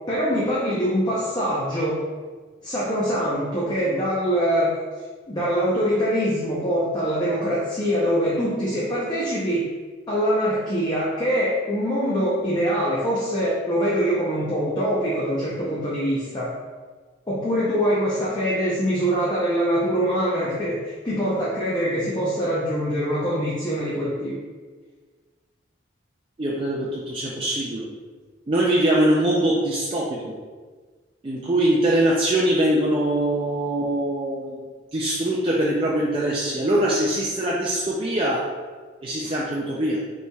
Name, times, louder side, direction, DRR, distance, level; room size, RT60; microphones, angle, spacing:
voice 1, 0.1-2.0 2.6-4.7 5.3-9.7 10.1-16.5 17.3-24.3, equal, 20° left, -7 dB, 0.6 m, -23 dB
voice 2, 26.4-27.9 28.5-30.3 31.2-34.6 34.9-38.4 39.0-40.0, right 1 dB, 25° right, -5 dB, 0.4 m, -22 dB
5.3 x 3.2 x 2.3 m, 1.5 s
head